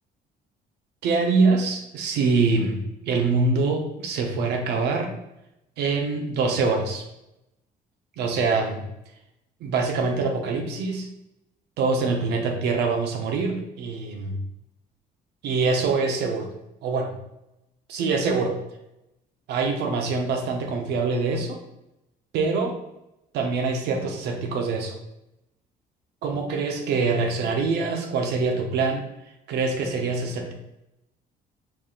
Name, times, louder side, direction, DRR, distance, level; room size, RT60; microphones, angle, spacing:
voice 1, 1.0-5.1 5.8-7.0 8.2-8.8 9.6-11.1 11.8-14.4 15.4-16.5 16.8-17.1 17.9-18.6 19.5-21.6 22.3-22.7 23.3-25.0 26.2-29.0 29.5-30.5, right 4 dB, 85° right, 3 dB, 0.8 m, -24 dB
4.8 x 2.4 x 3.7 m, 0.87 s
cardioid pair, 175°, 17 cm